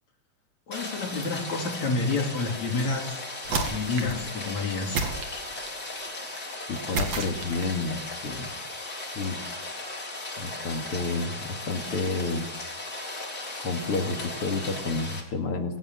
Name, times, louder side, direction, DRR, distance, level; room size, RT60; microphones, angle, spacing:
voice 1, 0.7-3.2 3.5-5.0, left 3 dB, 65° left, 2 dB, 4.1 m, -29 dB
Rain, 0.7-15.2, left 2 dB, 30° left, 4.5 m, -37 dB
sound 1, 3.4-4.2 4.9-5.9 6.9-7.8, right 4 dB, 60° right, 3.5 m, -31 dB
voice 2, 6.7-8.5 9.1-9.5 10.4-12.5 13.6-15.8, left 3 dB, 45° left, 5 dB, 3.1 m, -30 dB
21.5 x 18.5 x 7.6 m, 0.76 s
omnidirectional pair, 3.5 m